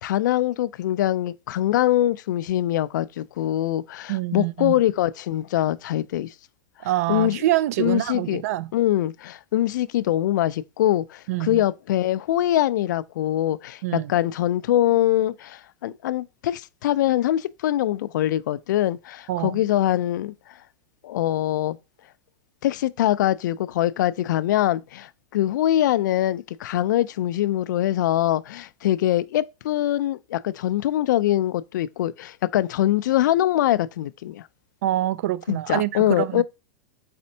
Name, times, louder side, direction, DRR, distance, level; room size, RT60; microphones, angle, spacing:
voice 1, 0.0-6.3 7.1-7.4 7.8-8.4 8.7-20.3 21.0-21.8 22.6-34.4 35.5-36.4, left 13 dB, 80° left, 0.3 m, -23 dB
voice 2, 4.1-4.7 6.8-8.7 11.3-11.6 13.8-14.1 19.3-19.6 34.8-36.4, right 15 dB, 55° right, 0.4 m, -25 dB
4.2 x 4.2 x 2.7 m
supercardioid pair, 175°, 10 cm